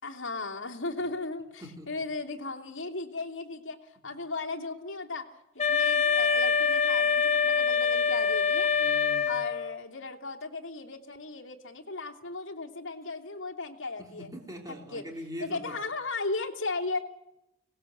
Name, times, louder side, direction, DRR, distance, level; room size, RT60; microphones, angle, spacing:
voice 1, 0.0-5.2 5.5-8.7 9.3-14.3 14.9-15.0 15.4-17.0, left 3 dB, 55° left, 1 dB, 2.8 m, -36 dB
voice 2, 1.6-2.0 4.1-4.2 8.7-9.4 14.0-15.7, equal, 15° right, 0 dB, 3.3 m, -43 dB
Wind instrument woodwind instrument, 5.6-9.8, left 6 dB, 30° left, 1.1 m, -25 dB
24.5 x 19.0 x 8.0 m, 0.90 s
head